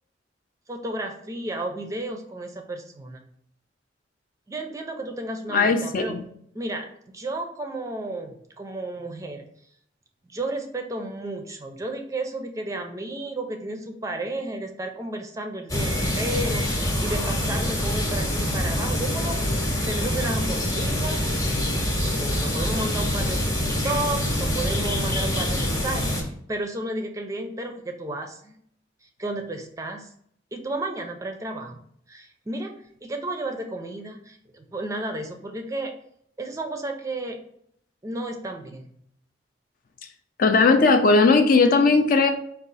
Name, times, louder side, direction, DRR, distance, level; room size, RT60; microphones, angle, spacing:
voice 1, 0.7-3.2 4.5-6.2 6.5-6.9 7.1-9.5 10.2-19.5 19.9-21.3 22.2-23.6 23.8-28.6 29.0-30.1 30.5-31.8 32.1-32.7 33.0-35.9 36.4-37.4 38.0-38.9, right 2 dB, 15° right, 4 dB, 0.4 m, -32 dB
voice 2, 5.5-6.2 40.4-42.3, left 3 dB, 50° left, 6 dB, 0.4 m, -18 dB
sound 1, 15.7-26.2, left 1 dB, 15° left, 0.8 m, -25 dB
4.9 x 2.4 x 3.9 m, 0.68 s
head